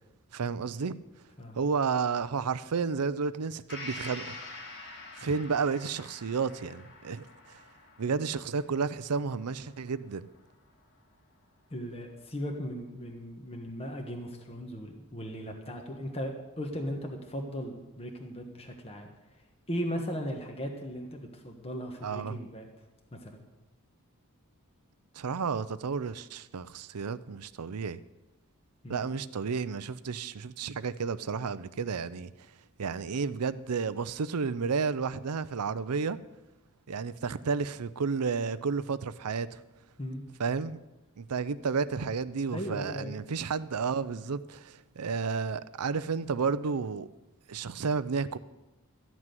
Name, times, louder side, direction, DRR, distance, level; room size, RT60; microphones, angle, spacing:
voice 1, 0.3-0.9 1.6-4.3 5.2-7.6 8.0-10.3 22.0-22.4 25.2-28.0 28.9-32.3 32.8-36.2 36.9-39.6 40.4-40.8 41.2-47.1 47.5-48.4, right 5 dB, 85° right, 0.6 m, -31 dB
Gong, 3.7-11.3 11.7-11.8, left 2 dB, 50° left, 1.9 m, -47 dB
voice 2, 11.7-19.1 19.7-22.7 23.1-23.4 28.8-29.1 40.0-40.3 42.5-43.2, equal, 25° left, 1.3 m, -37 dB
13.5 x 6.1 x 9.2 m
head